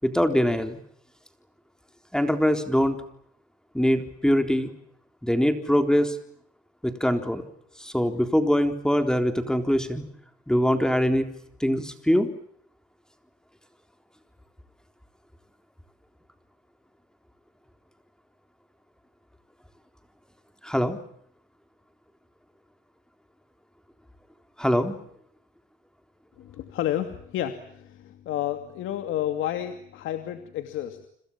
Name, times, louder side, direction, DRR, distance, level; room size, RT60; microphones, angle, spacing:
voice 1, 0.0-0.8 2.1-3.0 3.7-4.7 5.2-6.2 6.8-7.4 7.8-10.0 10.5-11.3 11.6-12.3 20.6-21.0 24.6-25.0, equal, 5° left, 7 dB, 3.8 m, -23 dB
voice 2, 26.4-31.1, left 12 dB, 85° left, 7 dB, 2.7 m, -31 dB
30.0 x 26.5 x 7.3 m, 0.67 s
cardioid pair, 90°, 20 cm